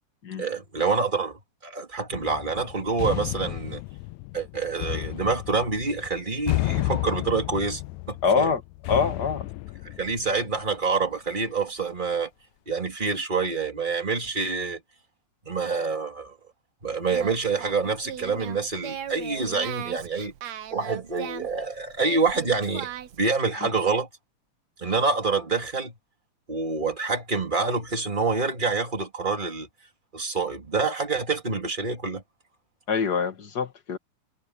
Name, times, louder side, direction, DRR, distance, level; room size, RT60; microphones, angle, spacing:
voice 1, 0.4-3.8 4.3-7.8 8.1-8.5 10.0-12.3 12.7-14.8 15.5-16.4 16.8-20.3 20.7-24.1 24.8-25.9 26.5-29.7 30.1-32.2, right 4 dB, 15° right, 2.4 m, -27 dB
sound 1, 2.1-10.8, left 20 dB, 80° left, 1.7 m, -32 dB
voice 2, 8.2-8.6 8.9-9.5 32.9-34.0, left 5 dB, 40° left, 1.9 m, -24 dB
Singing, 17.0-23.3, right 10 dB, 65° right, 2.2 m, -38 dB
omnidirectional pair, 3.7 m